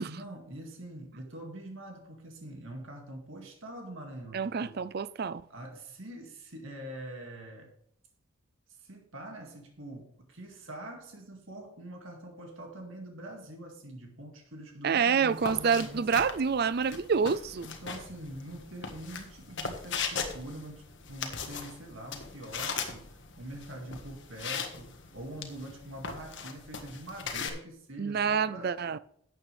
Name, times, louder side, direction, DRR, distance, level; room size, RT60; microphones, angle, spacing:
voice 1, 0.1-4.7 5.5-7.7 8.7-16.1 17.6-28.8, right 1 dB, 65° right, 2.2 m, -44 dB
voice 2, 4.3-5.4 14.8-17.7 28.0-29.0, right 6 dB, 45° right, 0.4 m, -27 dB
sound 1, 15.3-27.5, left 5 dB, 55° left, 1.5 m, -39 dB
12.0 x 8.9 x 3.4 m
head